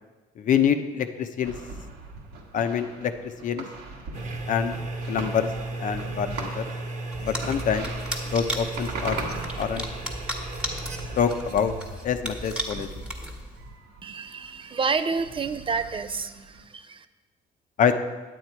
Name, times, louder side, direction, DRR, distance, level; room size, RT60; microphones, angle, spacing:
voice 1, 0.4-1.5 2.5-3.6 4.5-4.7 5.1-5.5 5.8-6.6 7.2-7.9 8.3-9.3 9.6-9.8 11.2-11.7 12.0-12.9 17.8-18.0, left 7 dB, 50° left, 8 dB, 0.7 m, -25 dB
sound 1, 1.4-16.6, right 3 dB, 80° right, 1.5 m, -41 dB
sound 2, 4.1-13.3, right 2 dB, 50° right, 1.2 m, -36 dB
sound 3, 7.1-13.7, equal, 5° right, 1.4 m, -35 dB
voice 2, 14.0-17.0, right 5 dB, 30° right, 10 dB, 0.5 m, -29 dB
9.4 x 8.2 x 4.5 m, 1.3 s
cardioid pair, 110°, 17 cm